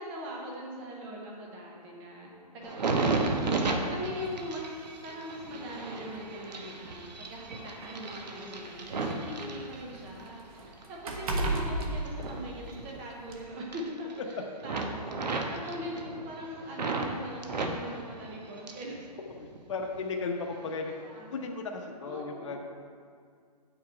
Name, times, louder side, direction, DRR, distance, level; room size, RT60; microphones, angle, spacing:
voice 1, 0.0-4.8 5.0-19.0 20.9-21.3 22.0-22.6, equal, 5° right, -1 dB, 0.4 m, -41 dB
sound 1, 2.6-10.3 10.7-13.3 13.6-14.3 14.6-17.1 17.4-19.0 19.3-20.0 20.6-20.8, right 3 dB, 80° right, 1.1 m, -34 dB
sound 2, 4.2-4.4 5.5-5.6 6.0-6.1 7.1-9.1 9.4-12.9 13.3-13.4, right 2 dB, 55° right, 1.2 m, -35 dB
voice 2, 19.4-20.9 21.3-22.6, left 4 dB, 45° left, 2 dB, 0.9 m, -35 dB
8.7 x 6.1 x 4.4 m, 2.1 s
hypercardioid pair, 170°, 21 cm